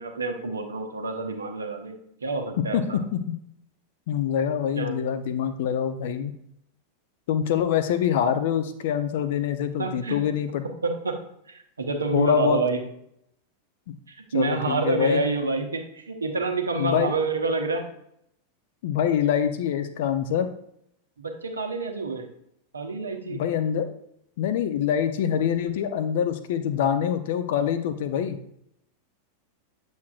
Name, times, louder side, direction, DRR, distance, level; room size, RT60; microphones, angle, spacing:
voice 1, 0.0-3.0 4.7-5.0 9.8-10.2 10.8-11.2 11.5-12.8 14.1-17.9 21.2-22.3 22.7-23.4, right 3 dB, 75° right, 3 dB, 1.0 m, -28 dB
voice 2, 2.7-3.3 4.1-6.3 7.3-10.6 12.1-12.6 14.3-15.2 16.8-17.1 18.8-20.5 23.3-23.9 24.4-28.4, left 9 dB, 55° left, 9 dB, 0.6 m, -25 dB
8.3 x 6.4 x 2.5 m, 0.74 s
figure-of-eight pair, 90°, 0 cm